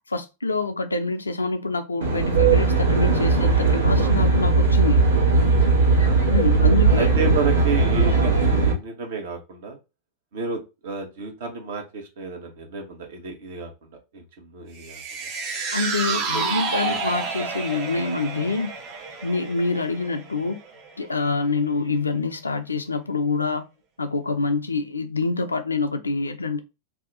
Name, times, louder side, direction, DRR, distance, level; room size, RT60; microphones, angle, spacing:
voice 1, 0.1-5.0 6.3-7.1 15.7-18.7 19.2-20.6 21.0-23.6 24.0-26.6, left 3 dB, 80° left, 0.4 m, -26 dB
Aircraft, 2.0-8.7, right 3 dB, 80° right, 1.2 m, -18 dB
voice 2, 5.6-5.9 7.0-9.8 10.3-15.0 16.1-16.4 16.9-17.0, right 4 dB, 55° right, 1.0 m, -31 dB
sound 1, 14.8-21.2 21.6-21.7, right 4 dB, 40° right, 0.7 m, -30 dB
2.7 x 2.2 x 3.8 m
figure-of-eight pair, 90°, 0 cm